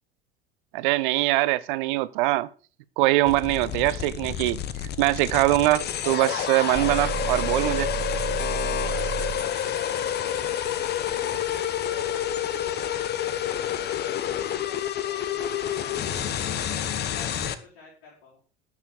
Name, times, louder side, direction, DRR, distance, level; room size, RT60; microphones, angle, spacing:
voice 1, 0.7-2.5 3.0-4.6 5.0-7.9, right 18 dB, 50° right, 0.8 m, -23 dB
sound 1, 3.3-17.5, left 10 dB, 30° left, 1.2 m, -29 dB
sound 2, 6.7-9.5, right 7 dB, 10° right, 1.3 m, -32 dB
sound 3, 6.8-12.0, left 2 dB, 15° left, 2.8 m, -47 dB
voice 2, 8.6-13.0 13.4-13.7 14.3-18.4, left 4 dB, 55° left, 4.9 m, -47 dB
12.5 x 6.6 x 6.8 m
figure-of-eight pair, 70°, 32 cm